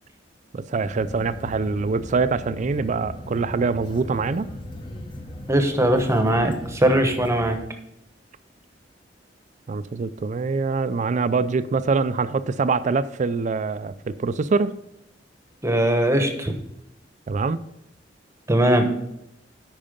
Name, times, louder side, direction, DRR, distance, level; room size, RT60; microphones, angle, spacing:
voice 1, 0.5-4.5 9.7-14.7 17.3-17.6, right 4 dB, 40° right, 0.4 m, -24 dB
sound 1, 0.8-7.6, left 1 dB, 25° left, 0.9 m, -38 dB
voice 2, 5.5-7.6 15.6-16.6 18.5-18.9, right 1 dB, 15° right, 0.9 m, -20 dB
8.8 x 5.5 x 5.2 m
head